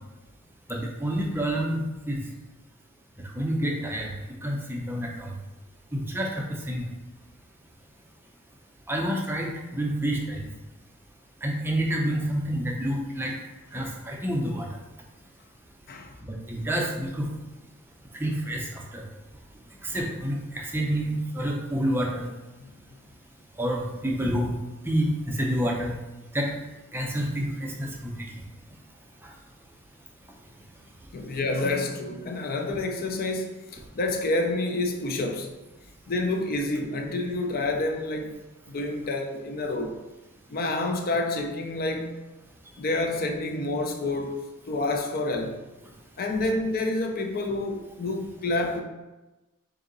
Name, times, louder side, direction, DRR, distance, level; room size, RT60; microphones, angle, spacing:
voice 1, 0.7-2.2 3.4-4.1 4.4-5.3 5.9-6.8 8.9-10.5 11.4-13.3 13.7-14.7 16.2-17.3 18.1-19.0 19.8-22.3 23.6-24.5 24.8-26.0 26.3-26.5 26.9-28.1 29.2-29.3, equal, 10° right, 0.5 m, -28 dB
voice 2, 31.1-35.5 36.1-38.4 38.7-40.0 40.5-42.2 42.8-45.6 46.2-48.8, left 2 dB, 40° left, 0.5 m, -28 dB
3.9 x 2.7 x 3.8 m
head